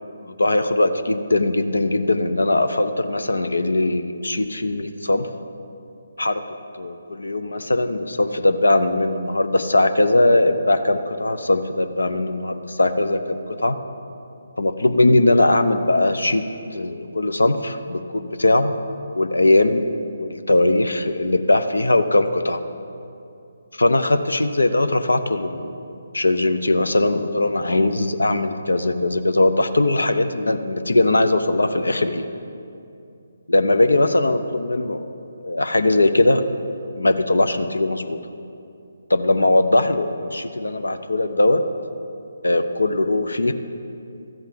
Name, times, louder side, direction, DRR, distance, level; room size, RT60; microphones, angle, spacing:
voice 1, 0.4-5.3 6.2-6.4 6.8-13.8 14.6-16.4 16.7-18.7 19.1-19.8 20.2-22.6 23.8-25.8 26.1-32.2 33.5-35.0 35.4-36.4 37.0-38.2 39.1-41.6 42.4-43.5, left 2 dB, 75° left, 9 dB, 0.7 m, -20 dB
13.5 x 5.5 x 8.5 m, 2.6 s
figure-of-eight pair, 145°, 0 cm